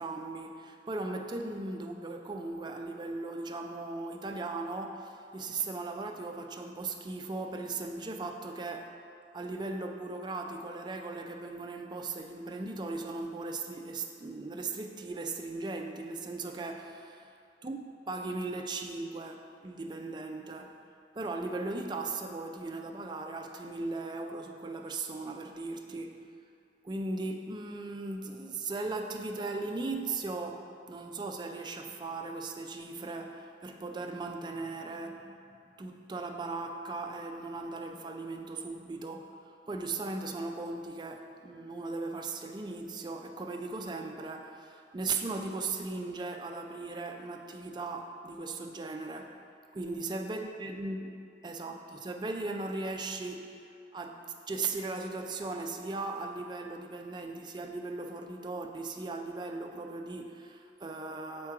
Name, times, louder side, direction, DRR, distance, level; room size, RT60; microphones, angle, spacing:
voice 1, 0.0-8.9 9.3-17.1 17.6-20.8 21.2-26.3 26.8-49.4 49.7-53.6 53.9-61.5, right 3 dB, 25° right, 3 dB, 0.4 m, -38 dB
6.0 x 4.5 x 4.7 m, 2.5 s
head